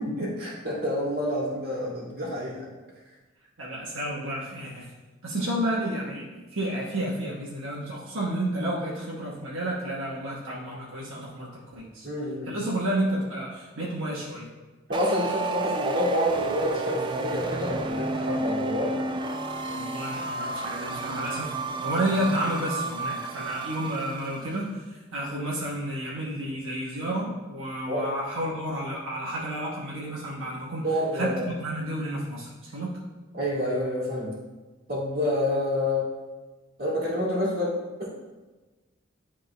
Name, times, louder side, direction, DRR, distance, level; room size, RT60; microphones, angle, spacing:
voice 1, 0.0-2.7 12.0-12.5 14.9-19.2 27.9-28.1 30.8-31.4 33.3-34.3 34.9-36.1 36.8-38.1, left 1 dB, 50° right, -5 dB, 1.8 m, -28 dB
voice 2, 3.6-4.9 5.2-12.1 12.4-14.5 19.7-30.9 31.1-33.0, right 1 dB, 75° right, -6 dB, 1.2 m, -31 dB
sound 1, 14.9-24.6, right 3 dB, 25° right, 0.3 m, -31 dB
10.5 x 3.6 x 3.3 m, 1.2 s
head